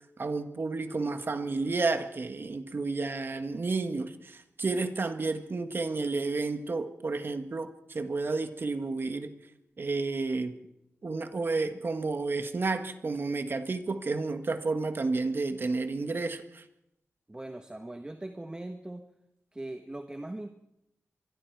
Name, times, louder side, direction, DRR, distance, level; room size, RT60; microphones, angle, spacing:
voice 1, 0.2-9.3 9.8-10.6 11.0-16.6, right 3 dB, 50° right, 8 dB, 1.5 m, -31 dB
voice 2, 17.3-19.1 19.5-20.5, right 1 dB, 20° right, 6 dB, 1.3 m, -40 dB
25.0 x 22.0 x 4.7 m, 0.84 s
wide cardioid pair, 85°, 5 cm